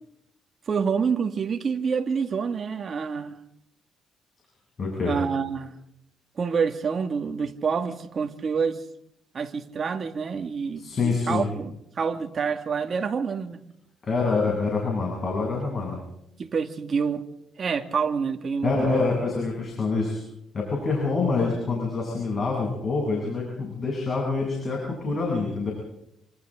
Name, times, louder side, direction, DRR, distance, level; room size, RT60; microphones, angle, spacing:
voice 1, 0.7-3.4 5.0-5.7 6.4-8.8 9.3-13.6 16.4-17.2 17.6-19.1, right 6 dB, 45° right, 5 dB, 2.2 m, -27 dB
voice 2, 4.8-5.1 10.8-11.5 14.0-16.0 18.6-20.2 20.5-25.7, left 4 dB, 40° left, -2 dB, 8.0 m, -26 dB
28.5 x 26.5 x 3.9 m, 0.79 s
cardioid pair, 100°, 0 cm